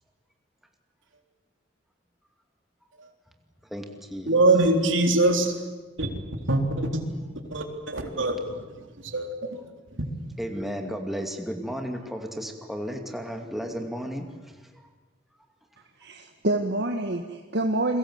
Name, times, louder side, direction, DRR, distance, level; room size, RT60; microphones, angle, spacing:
voice 1, 3.7-4.7 7.1-7.3 10.4-14.3 14.7-14.8, equal, ahead, 3 dB, 2.4 m, -34 dB
voice 2, 4.3-5.5 6.0-6.1 6.5-7.0 7.5-8.6 9.1-9.6, right 2 dB, 80° right, 4 dB, 3.8 m, -23 dB
voice 3, 16.0-18.0, right 1 dB, 60° right, 4 dB, 1.7 m, -27 dB
29.5 x 22.5 x 8.1 m, 1.3 s
head